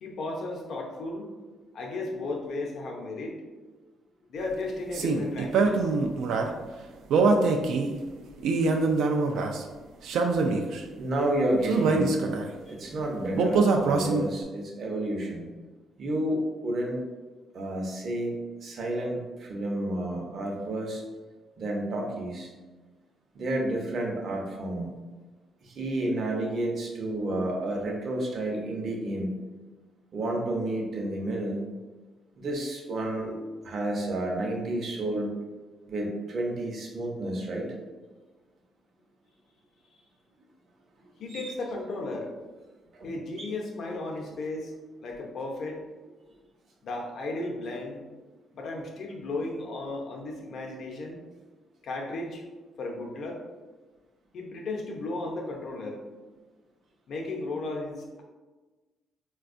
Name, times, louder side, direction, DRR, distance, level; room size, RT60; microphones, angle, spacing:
voice 1, 0.0-1.3 1.7-3.4 4.3-5.9 12.7-12.8 41.2-42.3 43.0-44.7 45.0-45.8 46.8-48.0 48.5-51.2 51.8-52.4 52.8-53.4 54.3-56.0 57.1-58.2, left 2 dB, 65° left, 0 dB, 0.6 m, -35 dB
sound 1, 4.9-6.5 7.1-7.9 8.4-9.6 10.0-10.8 11.6-12.5 13.4-14.4, right 3 dB, 80° right, 0.3 m, -24 dB
voice 2, 11.0-12.2 12.7-15.5 16.0-17.0 17.5-18.4 18.6-21.0 21.6-22.5 23.3-24.9 25.6-29.3 30.1-31.6 32.4-35.3 35.9-37.7 41.0-41.5 42.9-43.1, right 1 dB, 55° right, 0 dB, 0.7 m, -30 dB
4.1 x 2.2 x 2.5 m, 1.3 s
cardioid pair, 90°, 0 cm